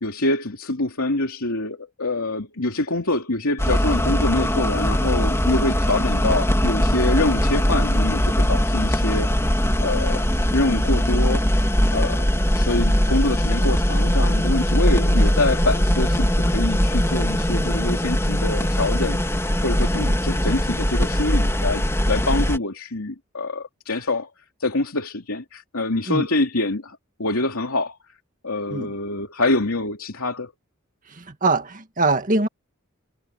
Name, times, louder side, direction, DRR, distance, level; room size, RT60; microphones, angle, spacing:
voice 1, 0.0-9.4 9.8-10.3 10.5-11.5 11.9-12.3 12.5-24.3 24.6-28.0 28.4-30.5, left 2 dB, 85° left, 2.9 m, -25 dB
sound 1, 3.6-22.6, equal, 15° left, 3.1 m, -21 dB
voice 2, 31.1-32.5, right 3 dB, 40° right, 1.9 m, -23 dB
head